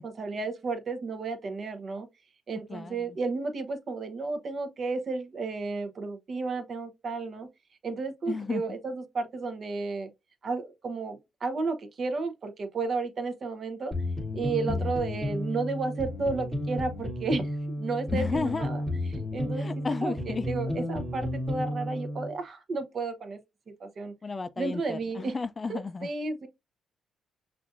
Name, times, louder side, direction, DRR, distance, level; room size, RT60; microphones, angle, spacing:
voice 1, 0.0-2.1 2.5-7.5 7.8-10.1 10.4-13.9 14.3-18.8 19.1-19.7 20.0-23.4 23.8-24.1 24.6-25.3 25.7-26.5, right 3 dB, 50° right, 0.8 m, -32 dB
voice 2, 2.7-3.2 8.3-8.6 14.7-14.9 18.1-18.7 19.6-20.5 24.2-26.1, left 4 dB, 30° left, 0.3 m, -33 dB
sound 1, 13.9-22.3, left 1 dB, 15° right, 1.3 m, -32 dB
5.9 x 2.5 x 2.4 m
cardioid pair, 90°, 0 cm